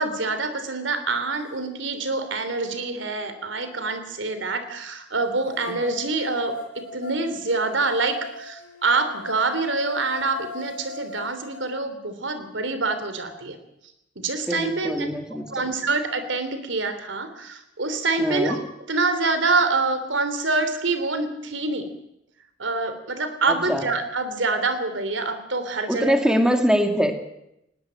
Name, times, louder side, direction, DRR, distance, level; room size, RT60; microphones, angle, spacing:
voice 1, 0.0-13.6 14.2-15.1 15.5-18.6 18.9-21.9 22.6-26.1, right 3 dB, 75° right, 10 dB, 3.1 m, -26 dB
sound 1, 1.8-1.9 2.5-4.4 5.6-11.6, left 4 dB, 80° left, 4.3 m, -40 dB
voice 2, 14.5-15.5 18.2-18.6 23.5-23.8 25.9-27.1, equal, 5° right, 6 dB, 2.2 m, -22 dB
20.0 x 17.5 x 8.8 m, 0.82 s
head